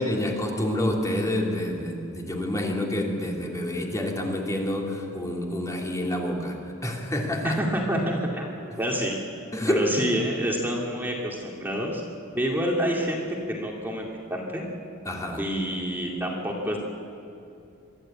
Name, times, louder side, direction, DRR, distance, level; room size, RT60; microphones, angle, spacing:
voice 1, 0.0-7.6 8.7-8.8 9.5-9.8 15.0-15.4, left 1 dB, 15° left, -1 dB, 2.9 m, -28 dB
voice 2, 7.4-8.5 8.8-9.2 9.7-12.0 12.3-13.2 13.5-14.7 15.4-16.8, equal, 10° right, -2 dB, 2.4 m, -27 dB
24.5 x 13.5 x 8.7 m, 2.6 s
head